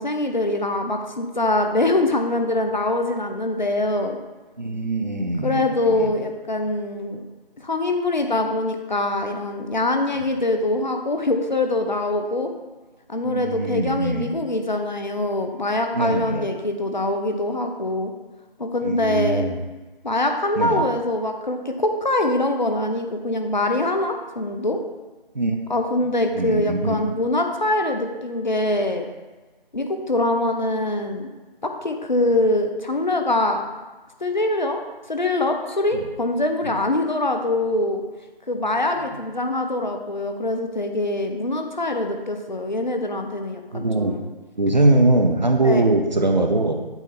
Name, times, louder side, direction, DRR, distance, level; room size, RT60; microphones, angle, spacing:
voice 1, 0.0-4.2 5.4-7.2 7.6-12.5 13.1-18.1 18.6-19.4 20.0-24.8 25.7-29.1 29.7-31.3 31.6-33.6 34.2-34.8 35.1-38.0 38.5-44.3 45.6-45.9, left 2 dB, 50° left, 4 dB, 0.7 m, -23 dB
voice 2, 4.6-6.1 10.2-10.3 13.2-14.3 15.9-16.5 18.8-19.6 20.6-20.8 25.3-25.6 26.3-27.0 35.9-36.1 36.6-36.8 43.7-44.2 44.6-46.7, right 2 dB, 50° right, 4 dB, 0.6 m, -22 dB
8.1 x 3.3 x 4.3 m, 1.2 s
figure-of-eight pair, 165°, 29 cm